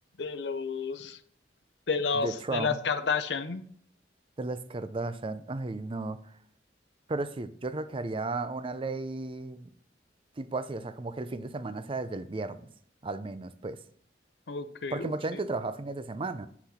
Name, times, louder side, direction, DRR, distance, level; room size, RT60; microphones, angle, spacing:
voice 1, 0.2-1.2 1.9-3.7 14.5-15.1, left 5 dB, 70° left, 0.7 m, -31 dB
voice 2, 2.1-2.8 4.4-6.3 7.1-9.7 10.4-12.6 13.0-13.8 14.9-16.5, right 3 dB, 30° right, 0.5 m, -34 dB
8.1 x 5.9 x 4.3 m
head